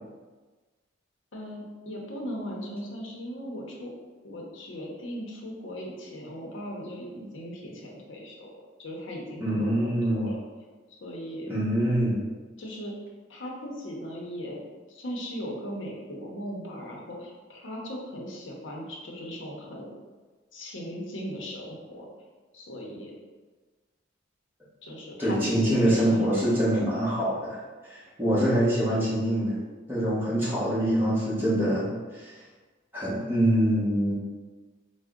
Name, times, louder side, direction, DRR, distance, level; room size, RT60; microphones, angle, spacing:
voice 1, 1.3-3.9 4.2-8.5 8.8-10.4 10.9-11.5 12.6-12.9 13.3-14.6 14.9-19.9 20.5-22.1 22.5-23.1 24.8-26.5, equal, 70° left, -1 dB, 0.7 m, -38 dB
voice 2, 9.4-10.3 11.4-12.2 25.2-29.5 29.9-32.4 32.9-34.1, right 1 dB, 10° right, -9 dB, 0.9 m, -25 dB
3.6 x 2.1 x 3.6 m, 1.3 s
head